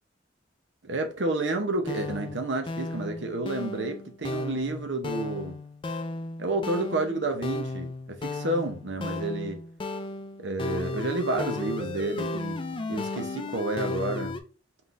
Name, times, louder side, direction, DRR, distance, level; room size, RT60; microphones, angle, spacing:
voice 1, 0.8-5.6 6.4-9.6 10.4-12.6 12.9-14.4, right 2 dB, 80° right, 0.8 m, -30 dB
sound 1, 1.8-14.4, left 2 dB, 25° left, 0.4 m, -34 dB
4.3 x 3.8 x 2.5 m
head